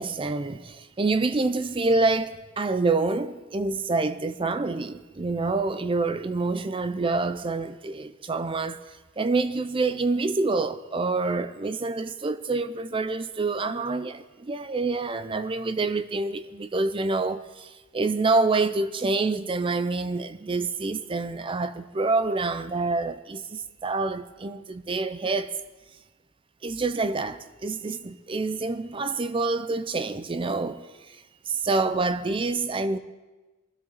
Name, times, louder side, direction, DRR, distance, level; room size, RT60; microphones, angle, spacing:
voice 1, 0.0-8.8 9.2-25.6 26.6-30.9 31.5-33.0, right 3 dB, 25° right, 0.4 m, -27 dB
20.0 x 12.5 x 4.0 m
head